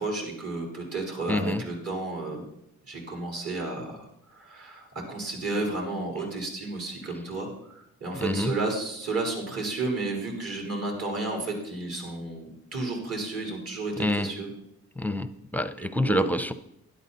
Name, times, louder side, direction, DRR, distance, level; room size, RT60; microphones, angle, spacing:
voice 1, 0.0-2.4 2.9-4.0 4.3-14.5 15.8-16.3, right 3 dB, 50° right, 0 dB, 4.5 m, -32 dB
voice 2, 1.3-1.6 8.2-8.5 14.0-14.3 15.0-16.5, left 1 dB, 5° left, 12 dB, 0.7 m, -27 dB
12.5 x 11.0 x 4.2 m, 0.75 s
cardioid pair, 90°, 30 cm